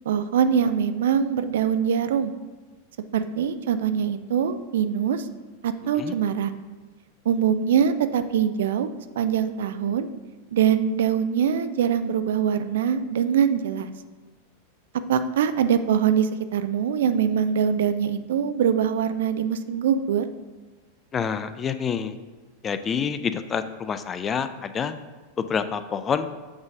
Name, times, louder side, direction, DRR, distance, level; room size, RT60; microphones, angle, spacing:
voice 1, 0.1-2.3 3.1-5.3 5.6-6.5 7.3-10.1 10.5-13.9 15.1-20.3, right 8 dB, 60° right, 10 dB, 0.3 m, -23 dB
voice 2, 21.1-22.1 22.6-25.0 25.4-26.3, left 7 dB, 25° left, 11 dB, 0.3 m, -27 dB
7.3 x 3.1 x 5.1 m, 1.3 s
figure-of-eight pair, 90°, 0 cm